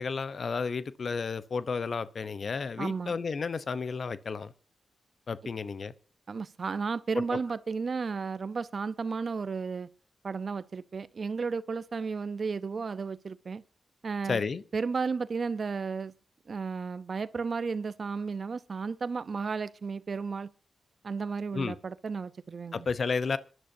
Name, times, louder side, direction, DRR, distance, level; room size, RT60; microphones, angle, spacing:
voice 1, 0.0-4.5 5.3-5.9 7.1-7.4 14.3-14.6 21.5-21.8 22.7-23.4, left 5 dB, 65° left, 0.8 m, -32 dB
voice 2, 2.8-3.1 6.3-9.9 10.2-13.6 14.0-14.4 14.7-16.1 16.5-20.5 21.0-22.9, right 5 dB, 60° right, 0.7 m, -33 dB
26.5 x 11.0 x 2.7 m
cardioid pair, 45°, 0 cm